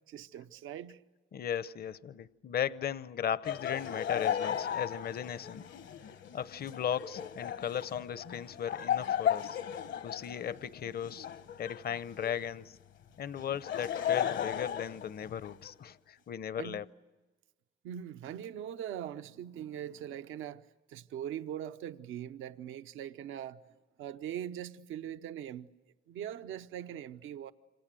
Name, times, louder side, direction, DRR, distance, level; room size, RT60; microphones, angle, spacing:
voice 1, 0.1-1.0 16.6-16.8 17.8-23.6 24.0-25.7 26.1-27.5, right 10 dB, 85° right, 0.9 m, -41 dB
voice 2, 1.3-5.6 6.3-9.6 10.0-11.3 11.6-12.8 13.2-16.9, left 9 dB, 50° left, 0.8 m, -37 dB
Laughter, 3.4-12.5 13.4-15.7, left 9 dB, 65° left, 1.2 m, -35 dB
28.0 x 26.5 x 7.7 m
cardioid pair, 90°, 20 cm